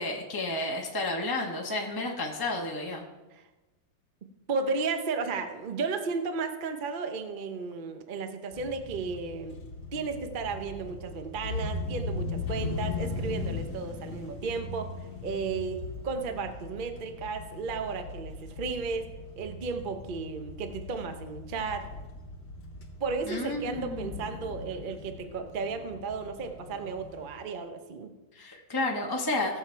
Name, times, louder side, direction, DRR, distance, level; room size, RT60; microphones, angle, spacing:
voice 1, 0.0-3.0 23.3-24.2 28.3-29.6, left 2 dB, 15° left, -1 dB, 1.0 m, -31 dB
voice 2, 4.5-9.6 9.9-14.9 15.2-19.1 19.4-21.9 23.0-28.1, right 4 dB, 40° right, 7 dB, 0.7 m, -34 dB
sound 1, 8.5-27.3, left 3 dB, 80° left, 2.3 m, -39 dB
16.5 x 7.2 x 4.5 m, 1.1 s
omnidirectional pair, 2.0 m